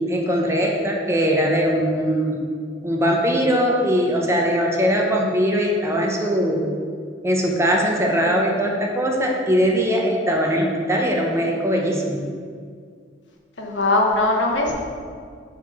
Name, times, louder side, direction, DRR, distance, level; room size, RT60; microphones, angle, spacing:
voice 1, 0.1-2.4 2.8-6.7 7.2-12.2, equal, 15° right, 0 dB, 0.7 m, -21 dB
voice 2, 13.6-14.7, left 2 dB, 75° left, 1 dB, 0.9 m, -20 dB
4.6 x 4.3 x 5.6 m, 2.1 s
head